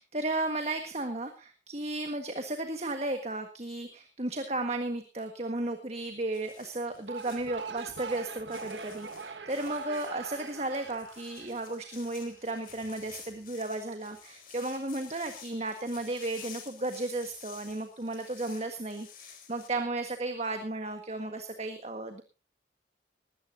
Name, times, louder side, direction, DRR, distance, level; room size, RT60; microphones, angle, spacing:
voice 1, 0.0-22.2, right 2 dB, 35° right, 6 dB, 1.6 m, -34 dB
walking through autumn leaves, 6.3-19.7, left 8 dB, 50° left, 4.2 m, -51 dB
sound 1, 6.9-12.3, right 5 dB, 80° right, 1.6 m, -42 dB
20.5 x 16.5 x 2.7 m, 0.31 s
head